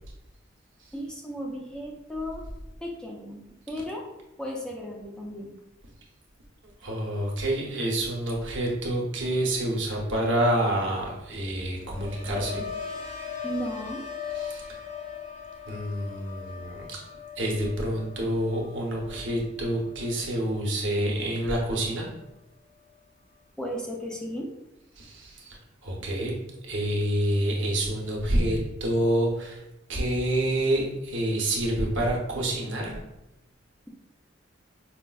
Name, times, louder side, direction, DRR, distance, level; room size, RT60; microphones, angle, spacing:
voice 1, 0.9-2.5 2.8-4.1 4.4-5.5 13.4-14.0 23.6-24.5, equal, 5° left, -1 dB, 0.4 m, -35 dB
voice 2, 6.8-12.6 14.3-14.6 15.7-17.0 17.4-22.1 25.0-26.3 26.6-29.6 29.9-32.9, right 1 dB, 75° right, -2 dB, 0.9 m, -27 dB
sound 1, 11.5-21.5 21.8-22.3, left 7 dB, 75° left, 1.4 m, -40 dB
4.6 x 2.1 x 2.3 m, 0.93 s
head